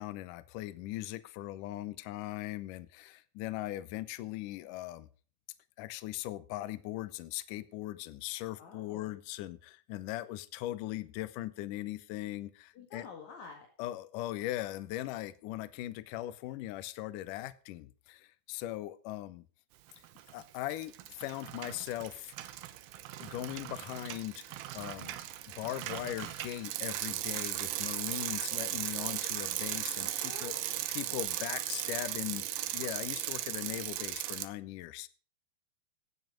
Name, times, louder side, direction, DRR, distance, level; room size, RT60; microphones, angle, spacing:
voice 1, 0.0-5.1 5.8-9.6 9.9-12.5 12.9-13.1 13.8-17.9 18.5-19.4 20.3-20.9 21.2-22.2 23.2-24.4 24.7-25.2 25.6-30.6 30.9-32.4 32.7-35.1, left 15 dB, 75° left, 16 dB, 2.1 m, -39 dB
voice 2, 8.6-9.2 12.7-13.7 30.2-30.7, left 5 dB, 55° left, 3 dB, 3.0 m, -49 dB
Bicycle, 20.0-20.4 20.7-34.5, right 14 dB, 85° right, 2.8 m, -37 dB
16.0 x 9.6 x 5.1 m, 0.38 s
omnidirectional pair, 4.4 m